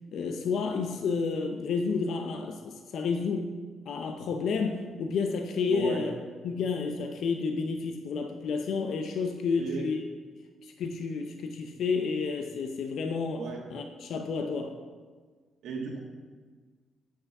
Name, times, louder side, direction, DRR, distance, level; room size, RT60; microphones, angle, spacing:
voice 1, 0.1-3.5 3.9-6.2 6.4-10.0 10.8-13.4 13.7-14.8, left 5 dB, 70° left, 5 dB, 0.7 m, -30 dB
voice 2, 5.7-6.0 9.5-9.9 13.3-13.6 15.6-16.0, right 4 dB, 75° right, -1 dB, 1.8 m, -35 dB
8.3 x 6.2 x 5.9 m, 1.5 s
cardioid pair, 90°, 0 cm